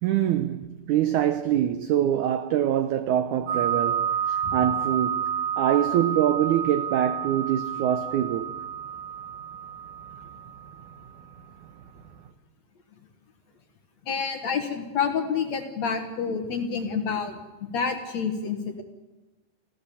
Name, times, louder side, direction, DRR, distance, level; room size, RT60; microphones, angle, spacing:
voice 1, 0.0-8.5, right 11 dB, 80° right, 1.7 m, -24 dB
sound 1, 3.5-12.3, right 8 dB, 65° right, 2.4 m, -30 dB
voice 2, 14.1-18.8, left 6 dB, 55° left, 2.2 m, -28 dB
26.0 x 15.5 x 7.1 m
omnidirectional pair, 4.5 m